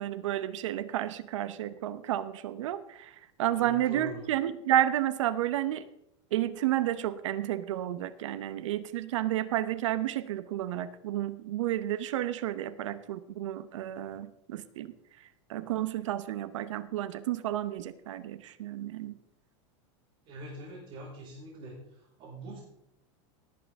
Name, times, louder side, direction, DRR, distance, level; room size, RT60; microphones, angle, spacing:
voice 1, 0.0-3.1 3.4-5.9 6.3-14.9 15.5-19.1, right 12 dB, 85° right, 14 dB, 0.9 m, -31 dB
voice 2, 3.5-4.3 20.3-21.8 22.2-22.6, right 2 dB, 35° right, -7 dB, 5.2 m, -43 dB
18.5 x 8.6 x 3.6 m, 0.81 s
supercardioid pair, 165°, 15 cm